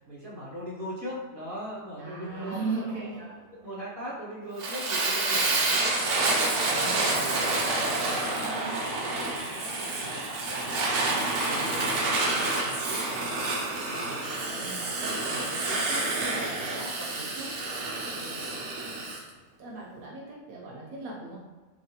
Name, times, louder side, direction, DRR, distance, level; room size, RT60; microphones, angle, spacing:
voice 1, 0.0-2.6 3.2-7.5 7.9-8.4 9.3-13.3 13.9-14.9 15.2-16.0 16.4-17.5 18.1-18.4, equal, 40° right, -8 dB, 1.4 m, -41 dB
voice 2, 2.0-3.2 6.8-7.3 8.3-8.8 14.6-14.9 19.6-21.4, right 3 dB, 85° right, -3 dB, 1.1 m, -37 dB
sound 1, 2.2-3.6, right 1 dB, 75° left, 1.5 m, -46 dB
Fire, 4.6-19.2, right 2 dB, 65° right, 0.9 m, -28 dB
3.2 x 2.8 x 2.7 m, 1.3 s
omnidirectional pair, 1.5 m